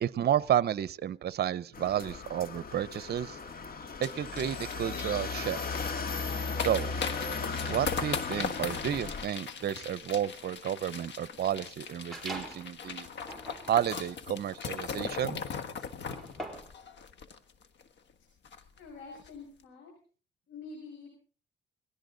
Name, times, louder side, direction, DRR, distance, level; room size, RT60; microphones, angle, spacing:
voice 1, 0.0-3.4 4.0-5.8 6.6-6.9 7.7-13.1 13.7-15.4, right 10 dB, 55° right, 18 dB, 0.8 m, -31 dB
sound 1, 1.7-9.2, left 4 dB, 50° left, 1.9 m, -36 dB
sound 2, 4.0-17.8 18.1-18.2 18.4-18.8 19.1-19.3, left 6 dB, 65° left, 1.5 m, -39 dB
sound 3, 12.1-12.7 13.2-16.8, right 1 dB, ahead, 4.5 m, -44 dB
voice 2, 18.8-19.9 20.5-21.2, left 4 dB, 85° left, 0 dB, 6.3 m, -46 dB
20.5 x 17.0 x 4.0 m, 0.40 s
cardioid pair, 90°, 20 cm